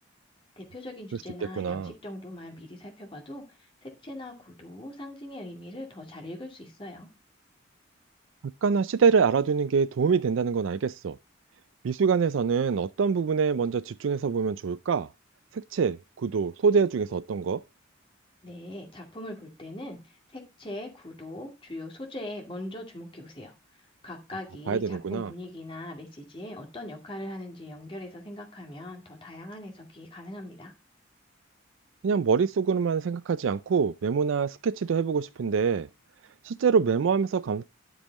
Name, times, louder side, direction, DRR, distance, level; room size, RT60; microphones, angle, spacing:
voice 1, 0.6-7.1 18.4-23.5 24.0-30.7, left 1 dB, 25° left, 2.2 m, -41 dB
voice 2, 1.6-1.9 8.6-11.2 11.8-15.1 15.7-17.6 24.7-25.3 32.0-35.9 36.4-37.6, right 5 dB, 70° right, 0.4 m, -25 dB
12.0 x 5.5 x 4.0 m
head